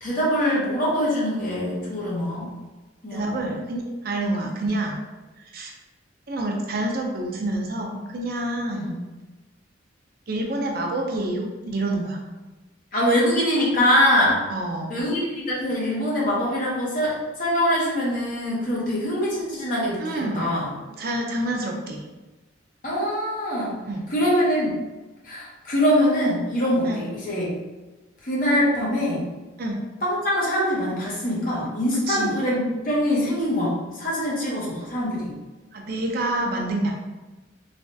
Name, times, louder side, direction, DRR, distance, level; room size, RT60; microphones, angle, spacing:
voice 1, 0.0-2.5 3.0-3.5 4.6-4.7 8.7-9.0 12.9-14.4 14.9-20.7 22.8-23.8 24.1-24.7 25.2-27.5 28.2-29.3 30.0-35.3, equal, 45° left, -5 dB, 0.8 m, -23 dB
voice 2, 3.1-5.0 5.4-5.7 6.3-9.0 10.3-12.2 14.5-14.9 20.0-20.6 21.0-22.0 23.9-24.1 26.9-27.0 29.6-29.8 32.1-32.3 35.7-36.9, right 1 dB, 45° right, 1 dB, 0.5 m, -27 dB
3.2 x 2.3 x 2.6 m, 1.2 s
head